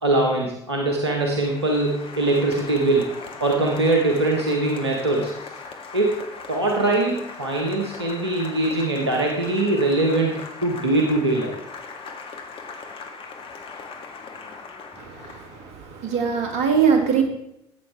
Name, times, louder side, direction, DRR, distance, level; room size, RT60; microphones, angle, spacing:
voice 1, 0.0-3.1 3.4-5.5 5.9-6.2 6.5-11.6, right 2 dB, 85° right, 1 dB, 1.1 m, -22 dB
Applause, 0.9-15.7, left 4 dB, 40° left, 1.7 m, -39 dB
voice 2, 15.0-17.2, right 6 dB, 60° right, 4 dB, 1.8 m, -22 dB
14.0 x 8.3 x 3.3 m, 0.81 s
figure-of-eight pair, 55°, 14 cm